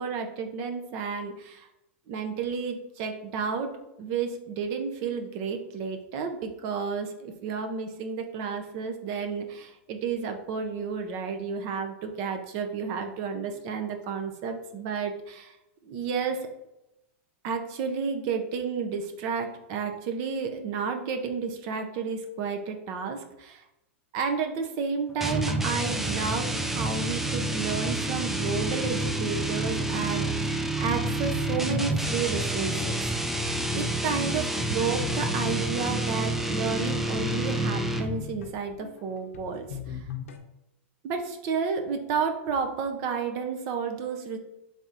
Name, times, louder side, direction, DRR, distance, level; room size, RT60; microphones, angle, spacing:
voice 1, 0.0-1.7 2.1-3.7 4.0-15.6 15.8-16.5 17.4-23.6 24.1-33.0 33.7-40.1 41.0-44.4, right 5 dB, 50° right, 5 dB, 0.6 m, -31 dB
sound 1, 25.2-38.3, right 1 dB, 5° right, 0.3 m, -29 dB
sound 2, 29.0-40.4, left 4 dB, 85° left, 0.6 m, -40 dB
4.1 x 3.4 x 2.5 m, 0.89 s
hypercardioid pair, 125°, 7 cm